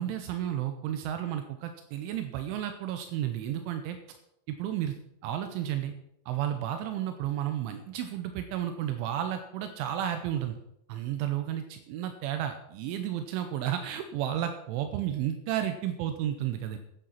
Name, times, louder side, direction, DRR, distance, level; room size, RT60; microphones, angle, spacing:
voice 1, 0.0-4.0 4.5-5.0 5.2-5.9 6.3-10.6 10.9-16.8, right 11 dB, 80° right, 8 dB, 3.1 m, -32 dB
10.0 x 9.4 x 5.8 m, 0.79 s
omnidirectional pair, 5.6 m